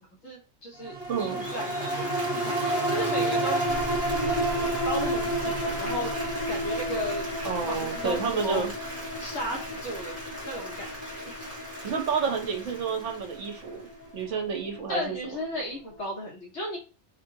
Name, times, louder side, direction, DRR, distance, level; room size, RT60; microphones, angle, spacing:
voice 1, 0.0-3.6 4.1-6.1 6.5-8.6 9.2-10.2 10.4-11.3 14.9-16.8, equal, 60° left, -2 dB, 1.1 m, -35 dB
sound 1, 0.8-15.5 15.9-16.0, right 1 dB, 50° right, 1.1 m, -31 dB
Applause, 1.0-14.2, equal, 10° right, 1.2 m, -39 dB
voice 2, 1.1-1.4 7.4-8.7 11.8-13.9 14.1-15.2, right 6 dB, 70° right, 3 dB, 1.0 m, -29 dB
2.8 x 2.7 x 2.6 m, 0.35 s
omnidirectional pair, 1.4 m